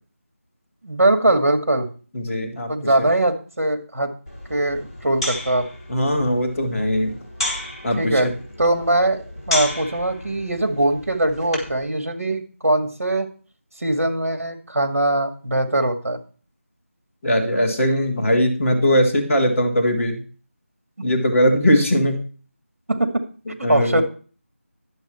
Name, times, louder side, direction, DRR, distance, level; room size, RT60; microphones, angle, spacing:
voice 1, 0.8-1.9 2.7-4.1 4.5-5.7 8.0-8.3 8.6-13.3 13.8-16.2 22.9-23.2 23.7-24.0, right 1 dB, 75° right, 7 dB, 2.1 m, -21 dB
voice 2, 2.1-2.7 3.0-3.1 5.9-7.2 7.8-8.3 17.2-20.2 21.0-22.2 23.6-24.0, equal, 5° left, -9 dB, 1.1 m, -20 dB
sound 1, 4.3-11.8, left 2 dB, 25° left, 3.5 m, -32 dB
11.0 x 7.9 x 4.4 m, 0.38 s
figure-of-eight pair, 180°, 8 cm